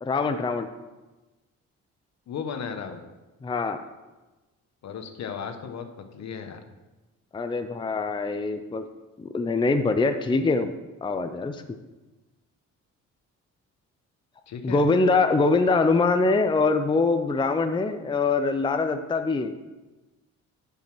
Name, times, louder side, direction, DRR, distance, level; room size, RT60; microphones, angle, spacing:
voice 1, 0.0-0.7 3.4-3.8 7.3-8.9 9.2-10.7 11.0-11.6 14.6-19.5, left 3 dB, 15° left, 8 dB, 0.5 m, -23 dB
voice 2, 2.3-3.1 4.8-6.6 14.5-14.9, left 6 dB, 65° left, 7 dB, 1.1 m, -35 dB
7.3 x 5.5 x 6.0 m, 1.1 s
cardioid pair, 90°, 30 cm